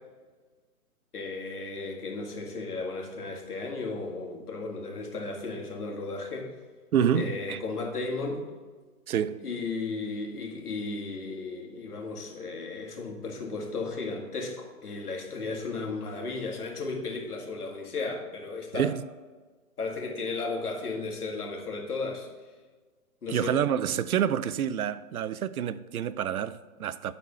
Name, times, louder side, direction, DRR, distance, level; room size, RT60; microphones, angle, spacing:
voice 1, 1.1-6.5 7.1-8.4 9.4-18.9 19.8-22.3 23.2-23.6, left 3 dB, 80° left, 2.1 m, -34 dB
voice 2, 6.9-7.6 9.1-9.4 18.7-19.1 23.3-27.1, right 9 dB, 70° right, 0.5 m, -28 dB
9.4 x 4.2 x 5.7 m
hypercardioid pair, 145°, 45 cm